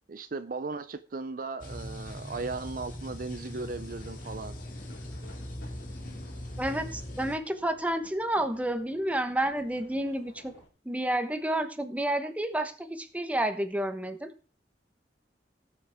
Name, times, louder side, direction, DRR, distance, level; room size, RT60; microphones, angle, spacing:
voice 1, 0.1-4.6, right 3 dB, 55° right, 0.6 m, -37 dB
sound 1, 1.6-7.4, left 1 dB, 50° left, 2.4 m, -40 dB
sound 2, 3.6-10.7, left 1 dB, 70° left, 3.1 m, -55 dB
voice 2, 6.6-10.5 10.8-14.3, right 1 dB, 10° right, 1.1 m, -30 dB
18.5 x 7.1 x 3.6 m
head